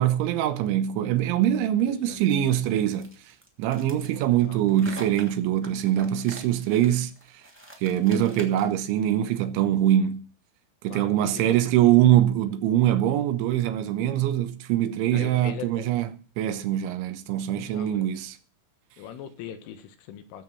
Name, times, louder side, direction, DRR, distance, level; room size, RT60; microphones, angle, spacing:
voice 1, 0.0-3.1 3.6-7.1 7.8-10.2 10.8-16.1 16.4-18.3, right 11 dB, 80° right, 3.2 m, -23 dB
voice 2, 1.8-2.2 4.1-4.6 8.3-8.4 10.8-11.6 11.8-12.0 14.0-14.1 15.1-15.9 17.5-18.1 19.0-20.4, left 9 dB, 85° left, 3.9 m, -41 dB
sound 1, 2.9-8.8, right 2 dB, 10° right, 0.5 m, -45 dB
15.0 x 7.6 x 5.8 m
omnidirectional pair, 5.5 m